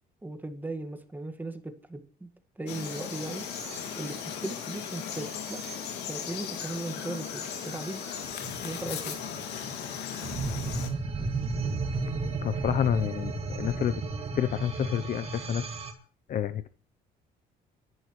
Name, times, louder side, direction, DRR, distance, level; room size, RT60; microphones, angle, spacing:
voice 1, 0.2-2.3 2.6-3.4 4.0-5.6 6.1-8.2 8.6-9.2, right 2 dB, 10° right, 8 dB, 1.8 m, -37 dB
Frog, 2.7-10.9, left 8 dB, 85° left, 2.4 m, -37 dB
sound 1, 2.8-15.9, right 3 dB, 35° right, 2.4 m, -36 dB
voice 2, 12.4-14.0 14.4-15.7 16.3-16.7, left 9 dB, 50° left, 13 dB, 0.8 m, -29 dB
29.5 x 11.0 x 3.2 m, 0.43 s
cardioid pair, 110°, 17 cm